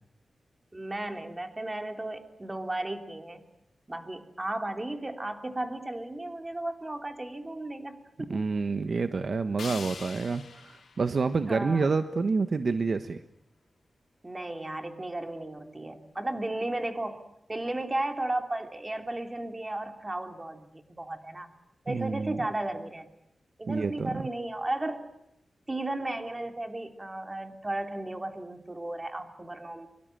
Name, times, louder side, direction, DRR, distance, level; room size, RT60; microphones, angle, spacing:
voice 1, 0.7-3.4 3.9-8.4 11.5-11.9 14.2-17.2 17.5-21.5 21.8-23.1 23.6-25.1 25.7-29.9, right 1 dB, 20° right, 6 dB, 3.2 m, -34 dB
voice 2, 8.3-13.2 21.9-22.4 23.7-24.2, right 4 dB, 55° right, 9 dB, 1.2 m, -28 dB
sound 1, 9.6-12.6, left 5 dB, 85° left, 3.8 m, -45 dB
24.5 x 24.0 x 9.1 m, 0.84 s
wide cardioid pair, 100°, 0 cm